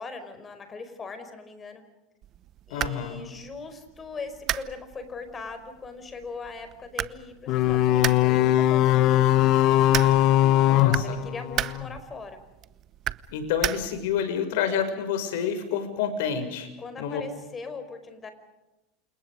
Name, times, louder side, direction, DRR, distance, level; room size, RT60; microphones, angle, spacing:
voice 1, 0.0-1.8 2.7-9.3 10.9-12.4 16.8-18.3, left 4 dB, 20° left, 9 dB, 4.9 m, -40 dB
sound 1, 2.2-14.2, right 12 dB, 40° right, 0.9 m, -36 dB
voice 2, 2.7-3.2 10.7-11.2 13.3-16.7 17.0-17.2, left 7 dB, 75° left, 8 dB, 6.3 m, -28 dB
sound 2, 7.5-11.9, left 13 dB, 50° left, 1.3 m, -20 dB
29.5 x 27.5 x 5.1 m, 1.0 s
supercardioid pair, 145°, 0 cm